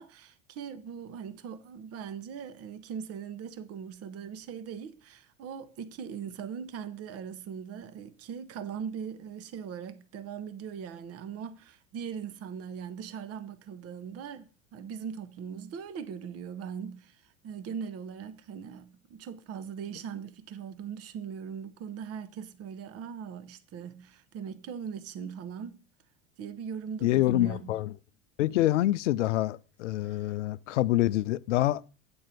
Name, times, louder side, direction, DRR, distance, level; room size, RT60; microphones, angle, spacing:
voice 1, 0.0-25.8 26.4-27.8 30.0-30.3, right 7 dB, 40° right, 0.9 m, -40 dB
voice 2, 27.0-27.9 28.4-31.8, left 15 dB, 75° left, 0.5 m, -26 dB
8.8 x 4.4 x 6.6 m
figure-of-eight pair, 75°, 37 cm